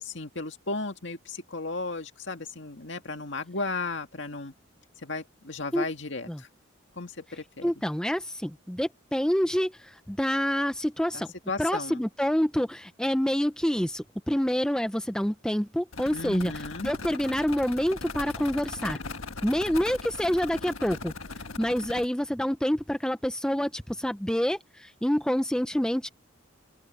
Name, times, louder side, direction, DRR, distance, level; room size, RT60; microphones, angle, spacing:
voice 1, 0.0-4.5 5.0-6.5 7.0-7.7 11.1-12.0 16.1-16.9, left 3 dB, 60° left, 2.1 m, -35 dB
voice 2, 7.6-11.3 11.6-16.5 16.8-19.0 19.4-21.1 21.6-26.1, equal, 5° left, 0.6 m, -27 dB
sound 1, 15.9-22.1, left 3 dB, 85° left, 1.6 m, -39 dB
open air
head